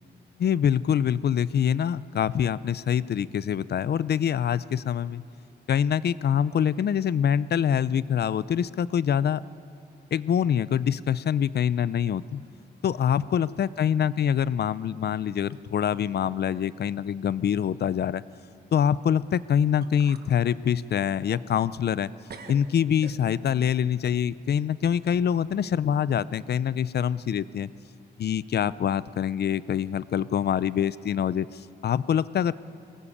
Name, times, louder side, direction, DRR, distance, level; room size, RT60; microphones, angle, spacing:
voice 1, 0.4-5.2 5.7-9.4 10.1-12.4 12.8-18.2 18.7-22.1 22.5-27.7 28.2-32.5, left 8 dB, 65° left, 18 dB, 0.5 m, -25 dB
sound 1, 12.1-12.5 12.8-13.3 13.7-13.8 14.7-14.8 15.5-15.6 16.0-16.4 16.7-16.8 19.4-19.5 19.8-20.3 20.8-22.0 22.3-23.6, right 5 dB, 65° right, 1.3 m, -48 dB
21.5 x 18.5 x 8.6 m, 2.4 s
wide cardioid pair, 140°, 18 cm